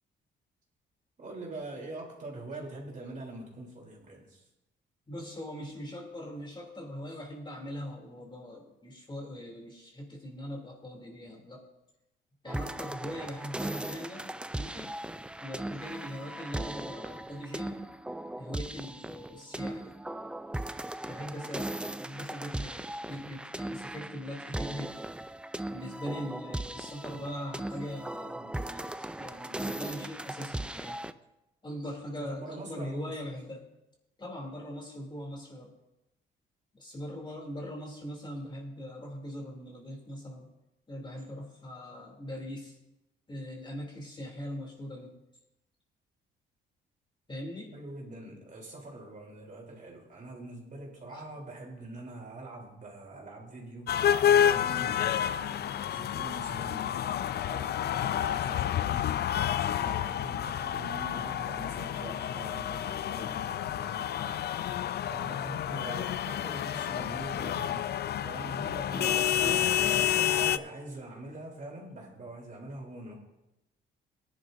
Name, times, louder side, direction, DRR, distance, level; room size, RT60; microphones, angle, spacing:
voice 1, 1.2-4.5 32.2-33.2 47.7-54.2 54.4-59.3 59.7-64.5 65.1-67.9 68.2-73.2, right 2 dB, 40° right, -1 dB, 3.5 m, -44 dB
voice 2, 5.1-11.6 12.4-15.0 15.4-17.8 18.4-19.9 21.1-21.7 22.0-25.1 25.7-31.0 31.6-33.7 34.2-35.7 36.7-40.5 40.9-42.8 43.3-45.1 47.3-47.7 51.1-51.3 68.9-69.7, equal, 25° left, 0 dB, 3.0 m, -41 dB
sound 1, 12.5-31.1, right 1 dB, 5° right, 0.4 m, -38 dB
sound 2, 53.9-70.6, left 10 dB, 55° left, 0.4 m, -29 dB
18.5 x 10.5 x 2.7 m, 0.94 s
cardioid pair, 90°, 20 cm